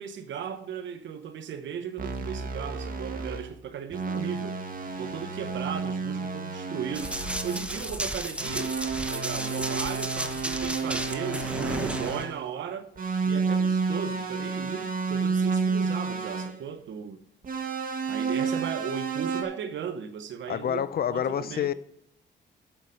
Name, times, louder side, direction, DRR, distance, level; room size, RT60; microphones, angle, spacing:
voice 1, 0.0-4.6 5.0-7.1 7.4-8.8 9.1-12.9 13.2-17.2 18.1-21.7, right 7 dB, 70° right, 1.1 m, -36 dB
sound 1, 2.0-3.5 3.9-7.7 8.4-12.4 13.0-16.6 17.4-19.4, right 4 dB, 45° right, 1.8 m, -30 dB
Run, 6.9-12.2, right 1 dB, 5° right, 0.9 m, -34 dB
voice 2, 20.5-21.7, left 9 dB, 50° left, 0.7 m, -28 dB
9.1 x 6.8 x 6.5 m
cardioid pair, 90°, 20 cm